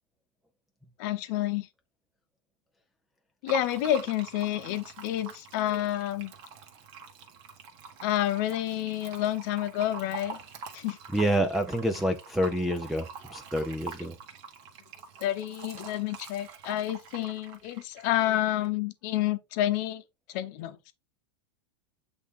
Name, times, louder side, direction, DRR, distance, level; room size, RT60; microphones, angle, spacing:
voice 1, 1.0-1.7 3.4-6.3 8.0-10.4 10.7-11.0 15.2-20.0 20.3-20.9, left 13 dB, 40° left, 0.8 m, -29 dB
Fill (with liquid), 3.5-18.7, right 5 dB, 35° right, 1.5 m, -45 dB
voice 2, 11.1-14.2, equal, ahead, 0.3 m, -28 dB
8.3 x 3.5 x 3.6 m
supercardioid pair, 170°, 15 cm